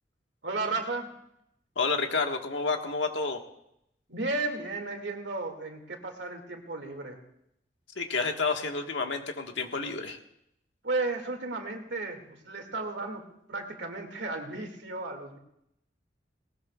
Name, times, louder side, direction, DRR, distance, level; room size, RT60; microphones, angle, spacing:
voice 1, 0.4-1.1 4.1-7.2 10.8-13.2 13.5-15.4, right 3 dB, 70° right, 4 dB, 2.2 m, -34 dB
voice 2, 1.8-3.4 8.0-10.2, left 4 dB, 80° left, 4 dB, 1.5 m, -30 dB
19.0 x 18.5 x 2.4 m, 0.77 s
head